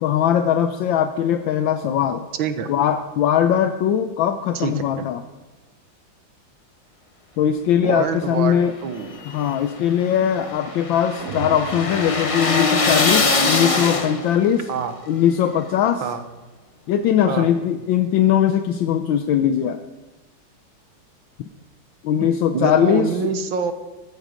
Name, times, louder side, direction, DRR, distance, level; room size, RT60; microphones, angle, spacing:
voice 1, 0.0-2.3 2.7-5.2 7.4-8.7 9.3-14.7 15.1-16.0 16.9-19.8 22.0-23.3, left 9 dB, 75° left, 8 dB, 1.4 m, -20 dB
voice 2, 2.3-2.7 4.5-5.1 7.8-9.2 14.7-14.9 16.0-16.2 17.3-17.5 22.2-23.7, right 6 dB, 75° right, 9 dB, 1.8 m, -26 dB
sound 1, 9.0-14.5, left 3 dB, 40° left, 0.5 m, -22 dB
sound 2, 11.2-13.3, right 3 dB, 55° right, 1.5 m, -36 dB
14.0 x 13.5 x 5.1 m, 1.1 s
omnidirectional pair, 2.2 m